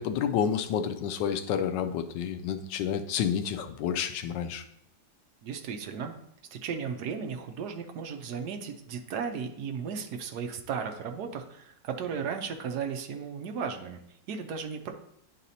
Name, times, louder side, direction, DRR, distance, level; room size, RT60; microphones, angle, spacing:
voice 1, 0.0-4.6, left 8 dB, 85° left, 8 dB, 1.2 m, -29 dB
voice 2, 5.4-6.1 6.5-14.0 14.3-14.9, right 6 dB, 70° right, 4 dB, 1.2 m, -35 dB
10.0 x 4.1 x 2.7 m, 0.75 s
omnidirectional pair, 1.9 m